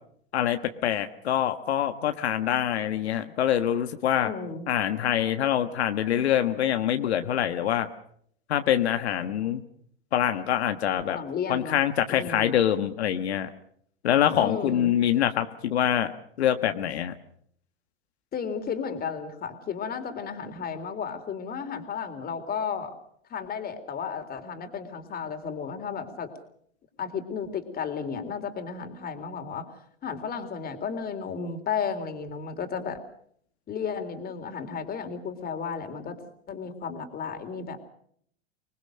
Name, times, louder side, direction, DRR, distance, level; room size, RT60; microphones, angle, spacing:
voice 1, 0.3-4.3 4.7-7.9 8.5-9.6 10.1-11.2 11.5-13.5 14.0-16.1 16.4-17.1, left 10 dB, 80° left, 8 dB, 1.5 m, -25 dB
voice 2, 4.2-4.7 10.9-11.8 12.1-12.6 14.4-15.0 18.3-22.9 23.3-26.3 27.0-29.7 30.0-33.0 33.7-36.2 36.5-37.8, left 6 dB, 30° left, 8 dB, 3.7 m, -33 dB
26.0 x 20.5 x 6.5 m, 0.66 s
hypercardioid pair, 110°, 32 cm